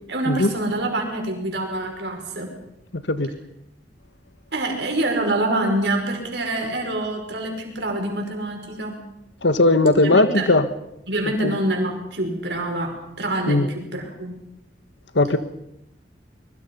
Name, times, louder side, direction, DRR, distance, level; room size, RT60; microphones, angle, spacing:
voice 1, 0.1-2.5 4.5-9.1 10.0-10.5 11.1-14.3, right 1 dB, 75° right, 5.6 m, -26 dB
voice 2, 2.9-3.3 9.4-10.7 11.4-11.5 13.5-13.7 15.1-15.4, left 2 dB, 85° left, 1.4 m, -18 dB
25.5 x 22.0 x 5.5 m
head